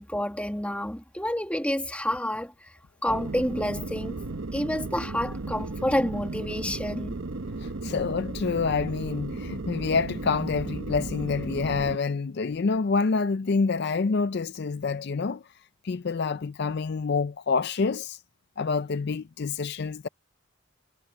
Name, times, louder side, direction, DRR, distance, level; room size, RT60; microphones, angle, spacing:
voice 1, 0.0-4.2 4.5-7.2, left 1 dB, 5° left, 1.6 m, -29 dB
sound 1, 3.1-12.0, right 2 dB, 65° right, 0.9 m, -35 dB
voice 2, 7.6-15.4 15.8-18.2 18.6-20.1, left 4 dB, 50° left, 0.4 m, -27 dB
head